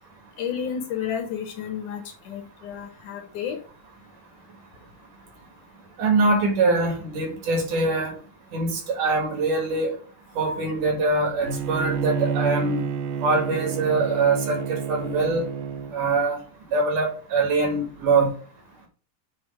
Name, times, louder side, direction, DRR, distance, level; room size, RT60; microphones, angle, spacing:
voice 1, 0.4-3.6, left 8 dB, 70° left, 2.4 m, -31 dB
voice 2, 6.0-8.2 8.5-10.0 10.4-12.9 13.2-15.4 15.9-16.4 16.7-18.3, right 3 dB, 65° right, 3.1 m, -23 dB
Bowed string instrument, 11.4-16.0, right 7 dB, 80° right, 2.2 m, -29 dB
8.2 x 2.9 x 5.3 m
omnidirectional pair, 4.0 m